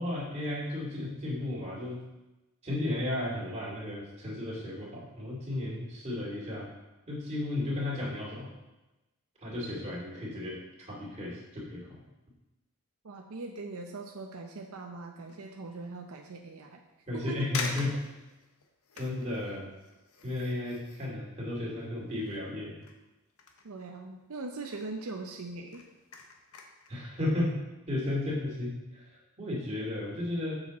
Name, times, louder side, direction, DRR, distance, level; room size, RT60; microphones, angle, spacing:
voice 1, 0.0-2.0 2.6-6.7 7.1-8.5 9.4-12.0 17.1-17.9 18.9-19.7 20.2-22.8 26.9-27.5 27.9-30.6, left 1 dB, 30° right, -4 dB, 2.4 m, -34 dB
voice 2, 13.0-16.8 17.1-17.5 23.6-25.8, right 3 dB, 85° right, 2 dB, 0.7 m, -41 dB
sound 1, 15.2-15.6 16.1-16.2 17.0-17.1 17.5-22.5 22.8-24.3 24.5-25.0 25.4-27.0 27.4-27.5, left 4 dB, 90° left, 0.9 m, -44 dB
7.4 x 6.4 x 4.1 m, 1.0 s
head